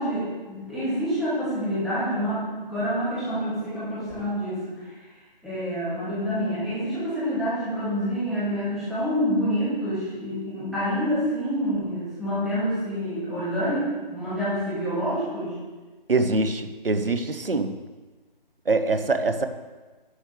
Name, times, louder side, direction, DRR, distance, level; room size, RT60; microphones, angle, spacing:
voice 1, 0.0-4.7 5.4-15.5, equal, ahead, -13 dB, 2.5 m, -27 dB
voice 2, 16.1-17.7 18.7-19.5, right 3 dB, 70° right, 9 dB, 1.1 m, -24 dB
11.5 x 8.9 x 3.4 m, 1.3 s
figure-of-eight pair, 155°, 29 cm